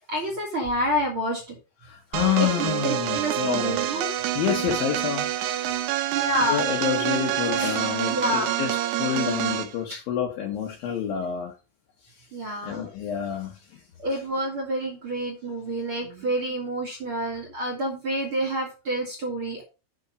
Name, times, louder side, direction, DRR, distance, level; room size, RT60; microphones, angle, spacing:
voice 1, 0.1-1.4 2.4-4.1 6.1-6.8 7.4-7.8 8.1-8.6 9.9-10.0 12.3-12.9 14.0-19.6, equal, 55° right, 1.4 m, -28 dB
voice 2, 1.8-3.8 4.3-5.3 6.5-11.5 12.6-13.5, left 9 dB, 80° left, 2.1 m, -28 dB
sound 1, 2.1-9.7, right 13 dB, 85° right, 2.3 m, -27 dB
8.5 x 6.0 x 5.1 m
omnidirectional pair, 5.9 m